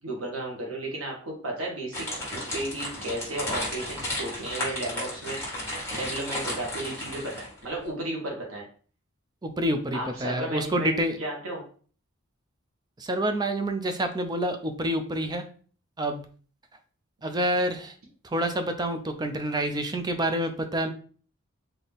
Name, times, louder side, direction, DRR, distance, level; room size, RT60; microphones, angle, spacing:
voice 1, 0.0-5.4 5.9-8.6 9.9-11.6, right 1 dB, 85° right, -2 dB, 1.5 m, -34 dB
sound 1, 1.9-7.6, left 1 dB, 15° left, 1.7 m, -34 dB
voice 2, 9.4-11.2 13.0-15.5 16.0-16.2 17.2-17.9 18.2-20.9, right 1 dB, 20° right, 7 dB, 0.5 m, -28 dB
4.0 x 2.8 x 3.5 m, 0.43 s
head